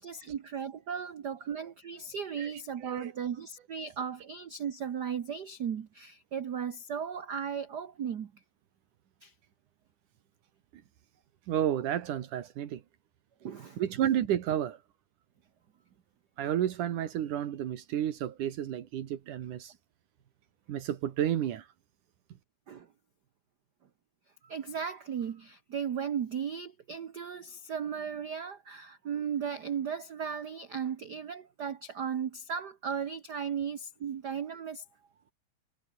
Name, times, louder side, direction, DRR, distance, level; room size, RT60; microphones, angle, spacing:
voice 1, 0.0-8.3 9.2-9.3 13.4-13.8 22.7-22.9 24.4-34.8, right 7 dB, 65° right, 1.0 m, -36 dB
voice 2, 2.8-3.1 11.5-12.8 13.8-14.8 16.4-19.7 20.7-21.7, right 10 dB, 80° right, 3.2 m, -31 dB
omnidirectional pair, 3.5 m